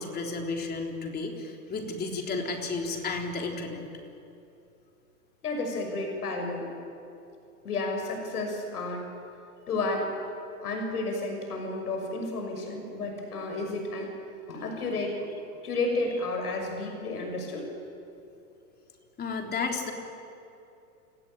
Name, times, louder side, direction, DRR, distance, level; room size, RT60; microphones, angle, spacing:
voice 1, 0.0-3.8 19.2-19.9, left 4 dB, 20° left, 2 dB, 3.7 m, -32 dB
voice 2, 5.4-6.7 7.6-9.1 9.7-10.1 10.6-14.2 14.5-17.7, left 2 dB, 85° left, 3 dB, 6.5 m, -32 dB
28.5 x 18.5 x 9.0 m, 2.7 s
hypercardioid pair, 125°, 45 cm